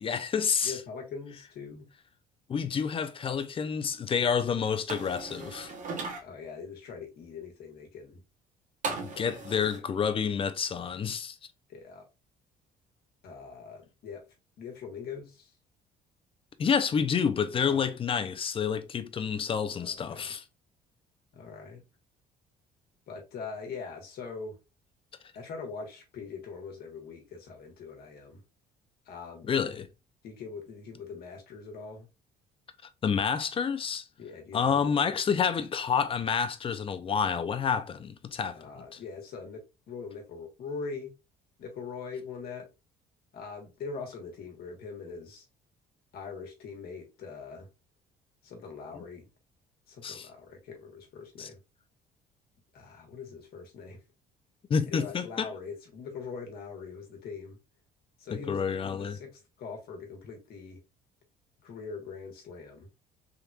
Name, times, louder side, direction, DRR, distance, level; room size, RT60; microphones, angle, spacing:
voice 1, 0.0-0.7 2.5-5.7 9.0-11.4 16.6-20.4 29.4-29.9 33.0-34.0 34.5-38.6 50.0-50.3 51.4-51.5 54.7-55.5 58.3-59.2, left 6 dB, 30° left, 0.5 m, -29 dB
voice 2, 0.6-1.9 6.2-8.2 9.1-9.3 11.7-12.1 13.2-14.3 14.6-15.5 17.7-17.8 19.7-20.3 21.3-21.8 23.1-24.6 25.3-28.4 29.0-29.7 30.2-32.1 34.2-34.8 38.5-41.1 41.6-42.7 43.3-45.5 46.1-47.7 48.4-49.3 49.9-51.6 52.7-54.0 54.8-57.6 58.2-60.8 61.6-62.9, left 5 dB, 65° left, 1.3 m, -42 dB
sound 1, 4.9-6.2 8.8-9.8, right 4 dB, 50° right, 1.0 m, -37 dB
3.5 x 3.0 x 2.3 m
cardioid pair, 110°, 17 cm